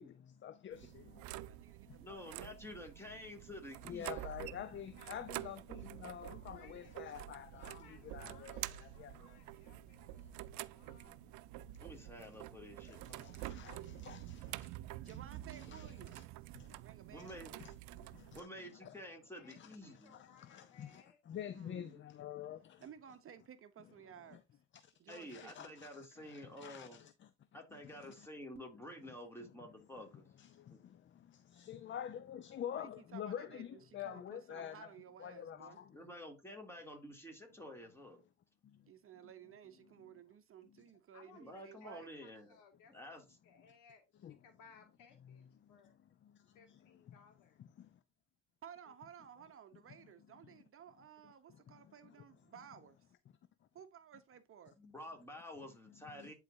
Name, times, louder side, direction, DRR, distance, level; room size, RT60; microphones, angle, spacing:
voice 1, 0.0-1.2 1.9-2.0 3.8-9.7 10.2-10.4 10.9-11.0 12.8-14.7 15.0-15.2 15.5-16.2 16.5-16.7 17.2-18.5 18.8-19.0 19.4-22.8 24.3-24.4 24.8-27.3 27.7-28.3 29.4-29.5 30.0-30.1 30.4-34.9 35.2-36.0 38.6-38.9 44.2-44.4 45.6-46.0 46.2-46.8 47.1-47.2 47.6-48.0 51.5-51.9 56.1-56.3, left 10 dB, 35° left, 0.6 m, -49 dB
sound 1, 0.7-18.4, right 15 dB, 60° right, 0.5 m, -48 dB
voice 2, 1.4-2.6 6.5-8.3 15.0-17.5 21.5-22.0 22.8-24.4 25.0-25.7 32.7-35.8 38.9-42.1 48.6-53.0 53.7-54.8, right 9 dB, 40° right, 0.9 m, -56 dB
voice 3, 2.0-4.2 8.2-8.3 11.8-13.5 17.1-17.6 18.3-20.2 25.1-27.0 27.5-30.3 30.7-30.8 35.9-38.2 41.3-42.6 42.9-43.2 54.8-56.3, left 1 dB, 5° left, 2.7 m, -50 dB
voice 4, 4.1-5.2 6.5-7.0 7.6-10.3 10.7-11.2 19.3-21.2 41.1-45.9 46.5-47.6, left 6 dB, 65° left, 2.4 m, -64 dB
10.5 x 4.0 x 2.7 m
hypercardioid pair, 75°, 33 cm